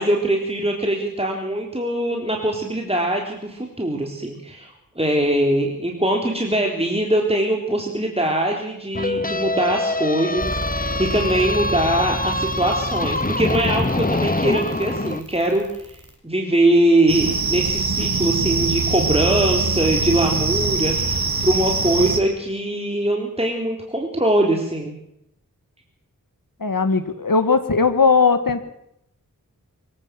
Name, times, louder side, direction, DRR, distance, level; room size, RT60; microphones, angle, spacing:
voice 1, 0.0-24.9, right 1 dB, 15° right, 0 dB, 3.9 m, -22 dB
sound 1, 8.9-15.2, left 2 dB, 25° left, 1.1 m, -25 dB
sound 2, 10.4-16.1, right 1 dB, 45° right, 6.3 m, -31 dB
sound 3, 17.1-22.2, right 4 dB, 80° right, 2.7 m, -23 dB
voice 2, 26.6-28.6, left 4 dB, 70° left, 10 dB, 2.0 m, -18 dB
24.0 x 17.0 x 7.7 m, 0.78 s
wide cardioid pair, 50°, 35 cm